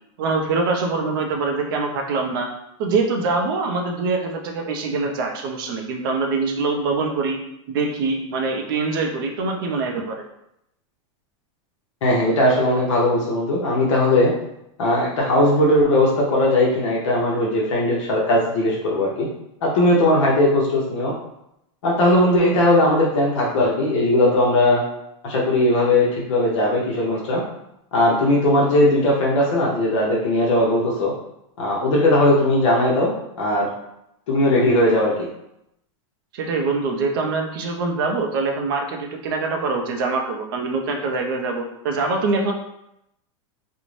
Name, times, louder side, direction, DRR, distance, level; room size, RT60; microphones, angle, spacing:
voice 1, 0.2-2.5 2.8-7.4 7.7-10.2 36.3-42.5, right 3 dB, 45° right, 2 dB, 0.4 m, -24 dB
voice 2, 12.0-14.3 14.8-19.3 19.6-21.1 21.8-24.8 25.2-27.4 27.9-31.1 31.6-33.1 33.4-33.7 34.3-35.1, left 1 dB, 65° left, -4 dB, 0.7 m, -18 dB
2.5 x 2.0 x 3.1 m, 0.82 s
supercardioid pair, 175°, 17 cm